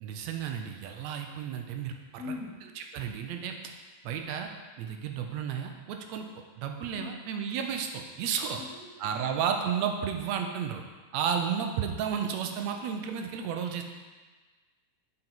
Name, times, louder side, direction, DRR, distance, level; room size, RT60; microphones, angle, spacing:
voice 1, 0.0-2.2 2.8-3.7 4.0-4.5 4.8-6.3 6.6-8.6 9.0-10.8 11.1-13.8, right 7 dB, 75° right, 4 dB, 1.7 m, -32 dB
voice 2, 2.2-2.6 6.9-7.2 8.5-9.4, left 4 dB, 50° left, -3 dB, 2.2 m, -42 dB
8.0 x 5.0 x 4.4 m, 1.4 s
omnidirectional pair, 3.4 m